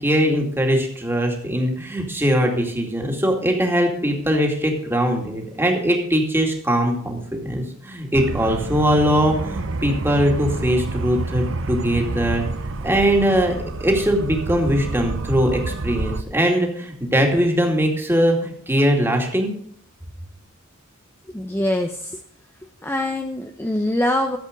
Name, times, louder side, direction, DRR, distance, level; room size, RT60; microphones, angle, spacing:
voice 1, 0.0-12.5 12.8-13.5 13.8-19.5, equal, 10° right, 1 dB, 2.4 m, -21 dB
sound 1, 8.1-16.2, right 2 dB, 65° right, 0.8 m, -28 dB
voice 2, 21.3-22.2 22.8-24.4, left 1 dB, 10° left, 4 dB, 0.7 m, -23 dB
14.0 x 7.8 x 5.2 m, 0.62 s
head